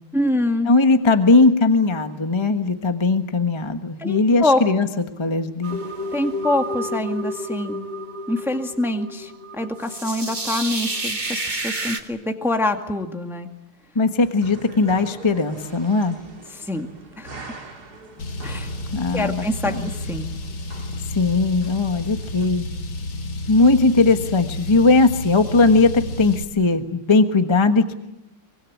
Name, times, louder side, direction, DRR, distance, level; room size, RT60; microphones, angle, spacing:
voice 1, 0.1-0.7 4.0-4.6 6.1-7.8 8.3-13.5 16.5-16.9 17.2-17.4 18.4-18.7 19.1-20.3, left 1 dB, ahead, 5 dB, 1.7 m, -25 dB
voice 2, 0.7-4.9 5.2-5.8 13.9-16.2 18.9-19.9 21.1-22.7 23.5-27.9, left 3 dB, 15° left, 7 dB, 1.0 m, -18 dB
sound 1, 5.6-12.0, right 1 dB, 20° right, 1.9 m, -30 dB
sound 2, 14.2-22.5, right 3 dB, 45° right, 3.3 m, -43 dB
Car, 18.2-26.4, left 2 dB, 65° left, 2.6 m, -31 dB
24.5 x 23.5 x 8.6 m, 0.92 s
omnidirectional pair, 2.4 m